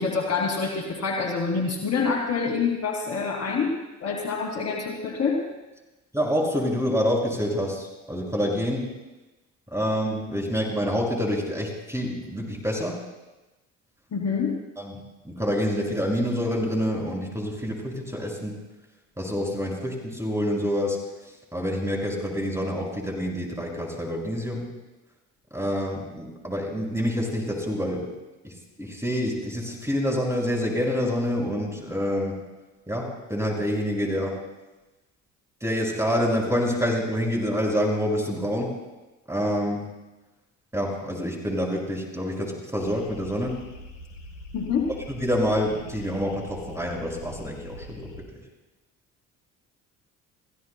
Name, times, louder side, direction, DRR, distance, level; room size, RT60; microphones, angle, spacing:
voice 1, 0.0-3.7 4.0-5.4 14.1-14.5 44.5-44.9, left 5 dB, 45° left, 0 dB, 2.8 m, -26 dB
voice 2, 6.1-8.9 9.7-13.0 14.8-14.9 15.2-18.6 19.2-21.0 21.5-24.7 25.5-28.1 28.4-28.5 28.8-32.4 32.9-34.4 35.6-38.7 39.3-39.9 40.7-43.6 45.2-48.1, equal, 5° right, -1 dB, 6.3 m, -27 dB
sound 1, 42.8-48.2, equal, 90° left, 2.7 m, -43 dB
30.0 x 16.0 x 2.3 m, 1.1 s
hypercardioid pair, 55°, 37 cm